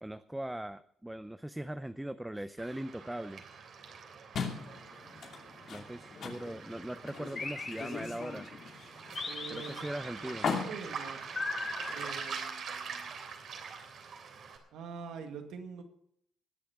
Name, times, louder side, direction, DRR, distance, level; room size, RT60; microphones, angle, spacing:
voice 1, 0.0-3.4 5.7-8.5 9.5-10.5, right 1 dB, 5° right, 12 dB, 0.5 m, -40 dB
Waves surf, 2.6-14.6, right 6 dB, 65° right, 3.2 m, -44 dB
sound 1, 4.3-12.1, left 5 dB, 60° left, 2.6 m, -41 dB
sound 2, 7.4-8.5 9.2-10.3 11.4-12.8, left 4 dB, 45° left, 3.1 m, -40 dB
voice 2, 9.2-9.9 10.2-10.3 10.6-11.3 11.9-13.1 14.7-15.8, right 6 dB, 85° right, 5 dB, 2.0 m, -45 dB
20.5 x 7.0 x 5.9 m, 0.71 s
cardioid pair, 90°, 0 cm